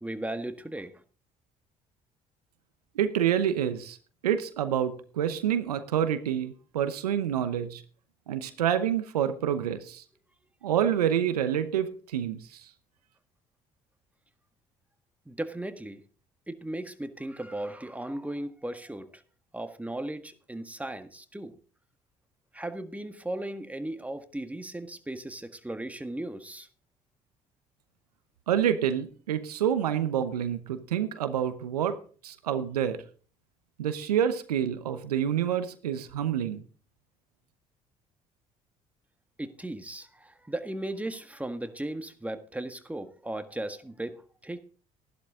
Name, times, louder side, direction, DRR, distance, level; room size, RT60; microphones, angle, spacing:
voice 1, 0.0-0.9 15.2-16.0 16.5-19.2 19.5-21.5 22.5-26.7 39.4-44.6, right 1 dB, 5° right, 8 dB, 1.6 m, -36 dB
voice 2, 2.9-4.0 4.2-7.8 8.3-10.0 10.6-12.6 28.5-32.0 32.2-33.0 33.8-36.6, right 9 dB, 90° right, 12 dB, 0.9 m, -27 dB
14.0 x 11.5 x 3.7 m, 0.40 s
hypercardioid pair, 55°, 19 cm